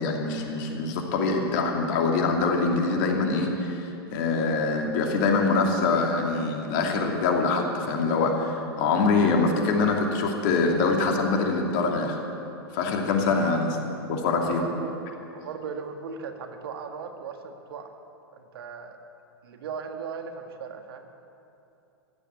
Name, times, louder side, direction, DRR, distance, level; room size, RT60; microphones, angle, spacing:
voice 1, 0.0-3.8 4.1-12.2 12.7-13.8 14.1-14.6, left 4 dB, 50° left, 2 dB, 2.7 m, -24 dB
voice 2, 13.2-13.6 14.4-14.9 15.3-17.9 18.4-19.0 19.4-21.1, right 6 dB, 65° right, 6 dB, 1.7 m, -37 dB
15.0 x 11.0 x 8.2 m, 2.8 s
hypercardioid pair, 110°, 13 cm